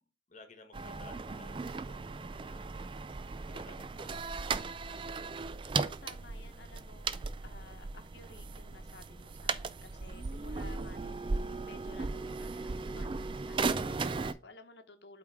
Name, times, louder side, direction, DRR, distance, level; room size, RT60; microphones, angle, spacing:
voice 1, 0.3-2.7 3.4-5.2, left 2 dB, 40° left, 1.3 m, -56 dB
sound 1, 0.7-14.3, right 4 dB, 25° right, 0.3 m, -37 dB
voice 2, 5.2-15.2, left 3 dB, 65° left, 1.0 m, -55 dB
8.3 x 3.5 x 4.8 m
head